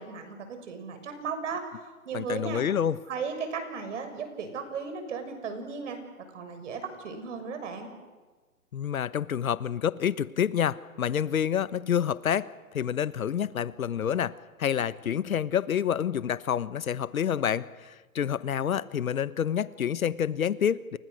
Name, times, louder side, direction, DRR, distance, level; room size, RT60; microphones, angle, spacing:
voice 1, 0.0-1.6 2.0-2.6 3.1-6.0 6.3-7.9, right 5 dB, 55° right, 8 dB, 6.4 m, -35 dB
voice 2, 2.1-3.0 8.7-12.5 12.7-21.0, left 9 dB, 70° left, 16 dB, 1.2 m, -28 dB
30.0 x 29.5 x 6.5 m, 1.3 s
hypercardioid pair, 150°, 44 cm